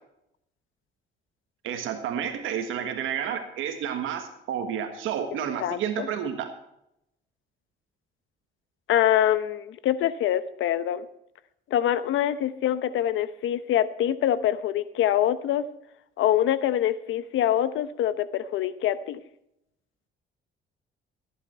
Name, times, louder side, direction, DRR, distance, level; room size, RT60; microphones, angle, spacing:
voice 1, 1.6-6.5, right 8 dB, 85° right, 6 dB, 1.6 m, -30 dB
voice 2, 5.6-6.1 8.9-11.0 11.7-15.6 16.2-19.2, left 11 dB, 80° left, 14 dB, 0.9 m, -25 dB
14.5 x 10.5 x 4.4 m, 0.80 s
cardioid pair, 90°, 20 cm